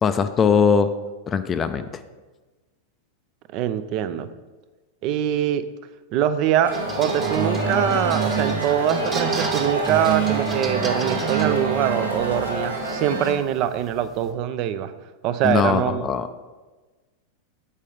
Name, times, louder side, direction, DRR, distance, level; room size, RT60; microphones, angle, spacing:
voice 1, 0.0-0.9 1.3-2.0 15.4-16.5, left 6 dB, 25° left, 10 dB, 0.4 m, -21 dB
voice 2, 3.5-4.3 5.0-5.7 6.1-14.9 15.2-16.1, right 10 dB, 40° right, 11 dB, 0.5 m, -23 dB
sound 1, 6.6-13.3, right 1 dB, 90° right, 1.5 m, -28 dB
sound 2, 6.7-14.3, right 6 dB, 20° right, 1.1 m, -29 dB
8.2 x 5.5 x 5.0 m, 1.3 s
figure-of-eight pair, 90°, 0 cm